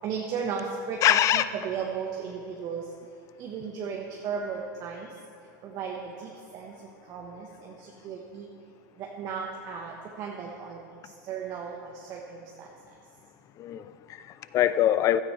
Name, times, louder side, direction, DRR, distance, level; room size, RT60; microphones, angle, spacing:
voice 1, 0.0-2.8 3.4-5.1 5.6-6.7 7.1-7.7 8.0-8.5 9.0-10.8 11.3-11.7 12.1-12.7, right 6 dB, 40° right, -1 dB, 1.3 m, -35 dB
voice 2, 1.0-1.5 13.6-15.2, left 12 dB, 30° left, 14 dB, 0.5 m, -23 dB
15.5 x 12.5 x 3.4 m, 2.4 s
supercardioid pair, 135°, 10 cm